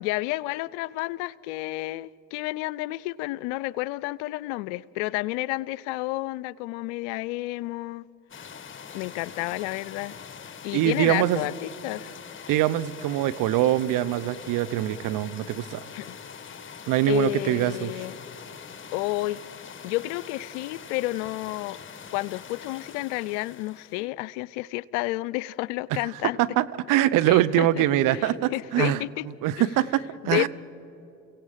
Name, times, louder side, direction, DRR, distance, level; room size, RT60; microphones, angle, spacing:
voice 1, 0.0-8.0 8.9-10.2 10.6-12.2 16.0-16.2 17.1-18.2 18.9-19.4 19.8-21.8 22.1-26.4 27.2-27.8 28.1-29.3 29.6-29.7 30.2-30.5, left 19 dB, 80° left, 0.6 m, -30 dB
sound 1, 8.3-24.0, left 7 dB, 35° left, 1.7 m, -43 dB
voice 2, 10.7-11.5 12.5-15.8 16.9-18.0 26.4-29.0 29.4-30.5, right 13 dB, 65° right, 0.9 m, -23 dB
29.0 x 17.0 x 7.5 m
hypercardioid pair, 70°, 35 cm